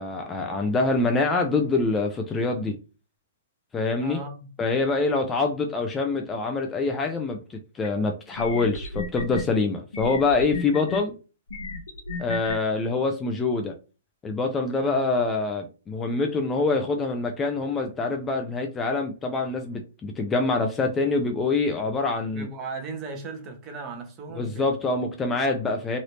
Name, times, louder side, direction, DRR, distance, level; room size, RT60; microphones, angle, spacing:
voice 1, 0.0-2.8 3.7-4.2 4.6-7.4 7.7-11.1 12.2-13.7 14.2-22.5 24.4-26.0, left 3 dB, 15° left, 0.4 m, -25 dB
voice 2, 4.0-4.5 14.8-15.1 22.3-24.7, right 3 dB, 25° right, 0.9 m, -37 dB
sound 1, 7.8-7.9 8.4-9.4 9.9-11.0 11.5-12.5, left 4 dB, 85° left, 0.8 m, -33 dB
3.1 x 2.7 x 3.0 m
hypercardioid pair, 145°, 0 cm